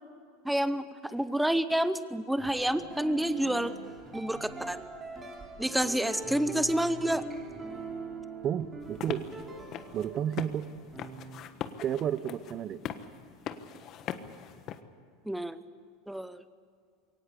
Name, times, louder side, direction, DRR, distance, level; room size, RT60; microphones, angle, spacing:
voice 1, 0.4-3.7 4.1-4.9 5.6-7.2 15.3-15.6 16.1-16.4, right 1 dB, 5° right, 13 dB, 0.7 m, -29 dB
sound 1, 2.4-11.4, right 3 dB, 20° right, 3.6 m, -42 dB
voice 2, 8.4-9.3 9.9-10.7 11.8-12.8, right 10 dB, 35° right, 15 dB, 0.8 m, -31 dB
sound 2, 8.8-14.8, left 9 dB, 40° left, 1.3 m, -41 dB
23.0 x 18.0 x 8.2 m, 2.3 s
supercardioid pair, 125°, 0 cm